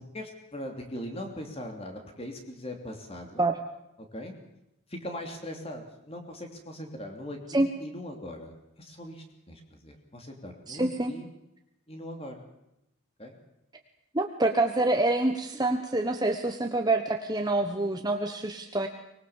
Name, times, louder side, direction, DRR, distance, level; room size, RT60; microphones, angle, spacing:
voice 1, 0.0-3.5 4.1-4.3 4.9-11.3 11.9-12.4 13.2-13.4, left 1 dB, 30° left, 3 dB, 3.0 m, -40 dB
voice 2, 10.7-11.1 14.1-18.9, right 2 dB, 20° right, 4 dB, 1.2 m, -26 dB
25.0 x 20.0 x 7.4 m, 0.87 s
head